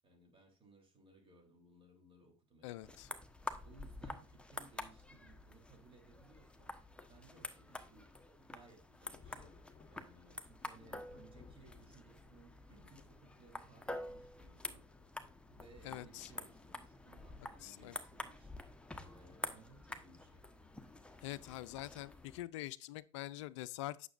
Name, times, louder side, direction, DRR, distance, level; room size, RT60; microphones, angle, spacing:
voice 1, 0.0-3.0 3.6-6.8 7.1-8.1 8.4-9.6 9.9-14.9 15.5-18.5 18.9-20.5, right 3 dB, 35° right, 3.3 m, -63 dB
voice 2, 2.6-3.1 15.8-16.3 17.6-17.9 21.2-24.1, left 16 dB, 70° left, 0.4 m, -45 dB
sound 1, 2.8-22.4, left 2 dB, 5° left, 1.0 m, -49 dB
Thunder, 9.1-16.1 17.1-17.2 18.7-19.0 19.3-19.4 21.4-21.6 22.3-22.6, left 6 dB, 30° left, 1.0 m, -64 dB
8.9 x 6.5 x 2.5 m
hypercardioid pair, 70°, 16 cm